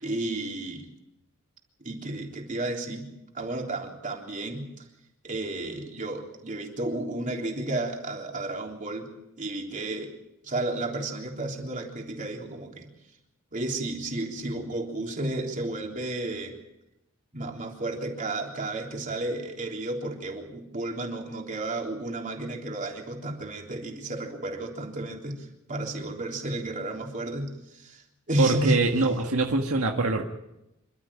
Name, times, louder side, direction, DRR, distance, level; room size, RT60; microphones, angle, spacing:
voice 1, 0.0-0.9 1.8-3.1 3.3-4.7 5.2-9.1 9.4-10.1 10.4-12.9 13.5-16.6 17.3-28.8, right 2 dB, 40° right, 1 dB, 3.6 m, -32 dB
voice 2, 28.4-30.2, right 3 dB, 80° right, 2 dB, 1.7 m, -24 dB
27.5 x 13.0 x 8.7 m, 0.89 s
head